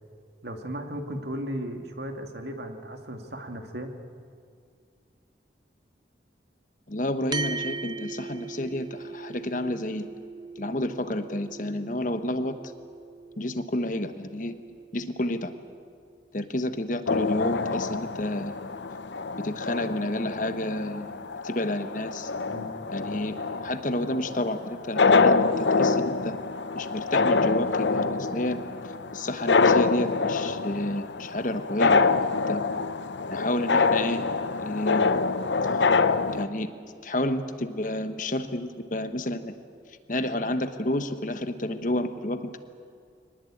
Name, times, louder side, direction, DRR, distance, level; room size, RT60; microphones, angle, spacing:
voice 1, 0.4-3.9 22.5-22.7, equal, 70° right, 4 dB, 2.2 m, -35 dB
voice 2, 6.9-10.1 10.6-12.6 13.4-14.5 14.9-15.5 16.3-18.5 19.4-21.1 21.4-22.3 22.9-23.3 23.6-26.3 26.7-28.6 29.1-32.0 32.3-32.6 33.3-34.2 34.6-35.1 36.3-36.7 37.0-39.5 40.1-42.6, left 1 dB, 45° left, 8 dB, 1.2 m, -30 dB
sound 1, 7.3-16.0, right 4 dB, 25° right, 0.6 m, -40 dB
sound 2, 17.1-36.5, left 4 dB, 80° left, 0.7 m, -25 dB
23.5 x 19.0 x 8.7 m, 2.3 s
head